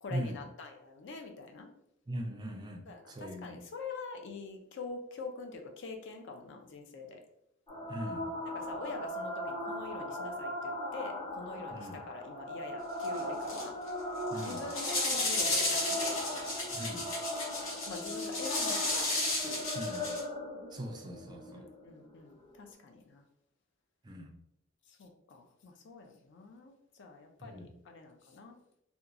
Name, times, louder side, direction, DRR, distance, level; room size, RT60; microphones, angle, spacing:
voice 1, 0.0-1.7 2.9-7.2 8.5-13.8 14.4-16.2 17.8-19.1 19.4-20.1 21.5-23.2 24.9-28.6, left 3 dB, 65° left, 4 dB, 0.4 m, -45 dB
voice 2, 2.1-3.6 7.9-8.3 11.7-12.0 14.3-14.6 16.7-17.1 19.7-20.1 20.7-21.6 24.0-24.3 27.4-27.7, equal, 20° right, 3 dB, 0.4 m, -40 dB
sound 1, 7.7-22.7, left 1 dB, 25° left, 0.6 m, -39 dB
sound 2, 13.0-13.2 13.5-13.9 14.3-20.2, left 2 dB, 80° left, 0.9 m, -33 dB
2.9 x 2.3 x 2.4 m, 0.77 s
head